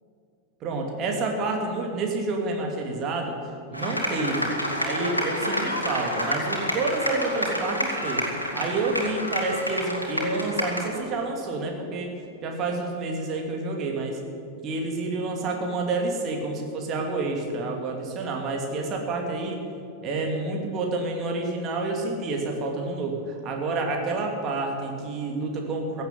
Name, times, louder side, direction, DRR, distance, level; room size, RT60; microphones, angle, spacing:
voice 1, 0.6-3.4 3.7-4.5 4.8-8.3 8.5-12.1 12.4-14.2 14.6-19.6 20.0-26.0, right 3 dB, 35° right, 1 dB, 2.6 m, -29 dB
sound 1, 3.7-11.0, equal, 85° left, 2.2 m, -29 dB
15.5 x 8.2 x 9.4 m, 2.6 s
figure-of-eight pair, 90°, 0 cm